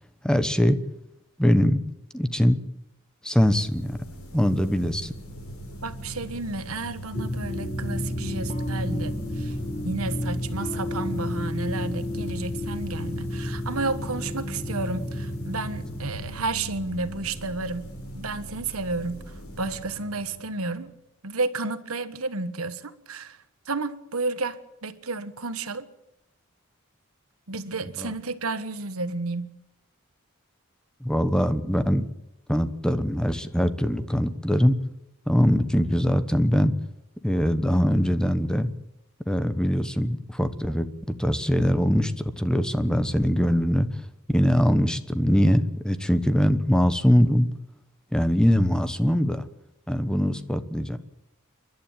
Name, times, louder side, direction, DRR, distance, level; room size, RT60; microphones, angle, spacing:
voice 1, 0.2-0.8 1.4-1.8 2.1-2.6 3.2-4.0 4.3-5.1 28.0-28.1 31.0-32.0 32.5-34.8 35.3-36.7 37.2-38.7 39.3-44.0 44.3-47.5 48.1-49.5 49.9-51.0, equal, 5° left, 11 dB, 1.1 m, -22 dB
sound 1, 3.4-21.0, equal, 85° left, 7.4 m, -42 dB
voice 2, 5.8-9.5 9.8-17.9 18.1-20.9 21.2-23.4 23.7-25.9 27.5-29.5, right 3 dB, 75° right, 11 dB, 1.4 m, -31 dB
sound 2, 7.1-16.4, left 1 dB, 30° left, 2.0 m, -31 dB
29.0 x 11.5 x 9.0 m, 0.86 s
head